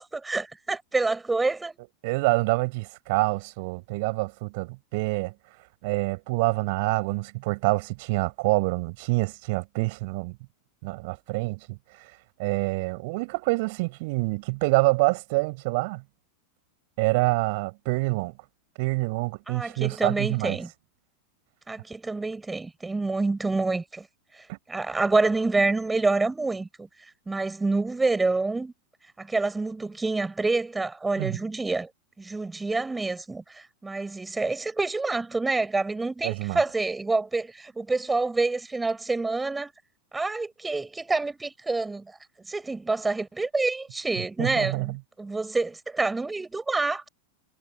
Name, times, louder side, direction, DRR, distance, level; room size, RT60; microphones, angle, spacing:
voice 1, 0.0-1.8 19.5-20.7 21.7-24.1 24.3-26.9 27.3-28.7 29.2-31.9 32.2-39.7 40.1-42.2 42.5-47.1, right 3 dB, 10° right, 4.5 m, -27 dB
voice 2, 2.0-5.3 5.8-10.4 10.8-11.8 12.4-16.0 17.0-18.3 18.8-20.6 24.5-24.6 31.2-31.4 36.2-36.6 44.4-45.0, right 26 dB, 50° right, 7.0 m, -26 dB
figure-of-eight pair, 90°, 0 cm